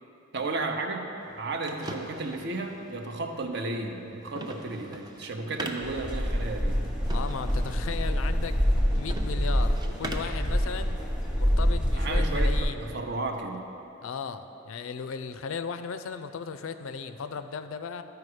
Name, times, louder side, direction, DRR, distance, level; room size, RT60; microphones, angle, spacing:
voice 1, 0.3-1.1 1.4-6.8 12.0-13.6, right 3 dB, 55° right, 4 dB, 0.7 m, -33 dB
sound 1, 1.2-10.4, right 1 dB, 20° right, 0.5 m, -43 dB
sound 2, 5.8-12.6, equal, 5° right, 0.9 m, -26 dB
voice 2, 7.1-8.6 9.0-11.0 11.4-12.9 14.0-18.0, left 5 dB, 75° left, 10 dB, 0.4 m, -36 dB
12.5 x 4.8 x 4.9 m, 2.8 s
head